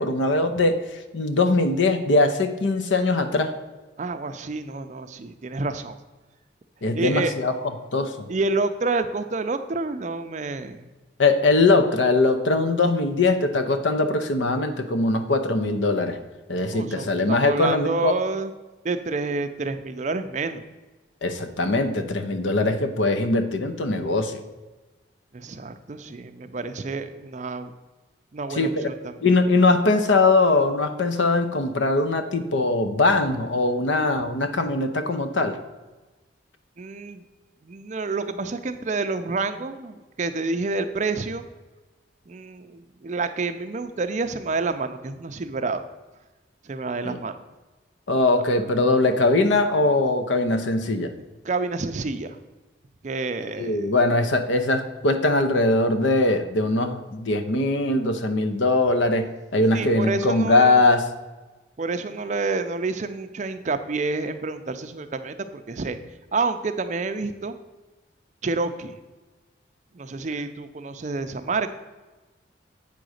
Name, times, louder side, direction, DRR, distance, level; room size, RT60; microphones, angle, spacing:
voice 1, 0.0-3.5 6.8-7.5 7.9-8.3 11.2-16.2 16.5-18.2 21.2-24.4 28.5-28.9 29.2-35.6 47.0-47.2 48.1-51.1 53.6-61.1, left 2 dB, 70° left, 8 dB, 0.7 m, -21 dB
voice 2, 4.0-6.0 6.9-7.3 8.3-10.9 16.7-18.5 18.8-20.6 25.3-27.7 28.3-29.3 36.8-37.2 37.6-41.4 42.3-45.8 46.6-47.4 51.4-52.4 53.0-53.9 59.7-60.8 61.8-66.0 66.3-67.5 68.4-69.0 69.9-71.7, right 3 dB, 35° right, 9 dB, 0.4 m, -28 dB
8.3 x 3.9 x 6.4 m, 1.2 s
head